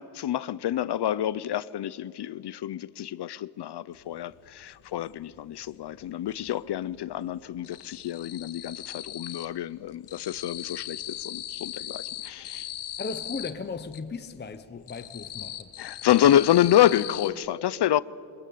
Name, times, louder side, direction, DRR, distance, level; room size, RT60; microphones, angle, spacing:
voice 1, 0.0-12.7 15.8-18.0, left 12 dB, 55° left, 0.7 m, -27 dB
sound 1, 4.1-4.2 4.5-5.7 6.0-6.7 6.9-9.6 9.9-14.0 14.5-17.3, left 11 dB, 90° left, 1.9 m, -39 dB
voice 2, 13.0-15.7, left 4 dB, 20° left, 0.8 m, -36 dB
27.5 x 25.0 x 8.6 m
wide cardioid pair, 165°, 48 cm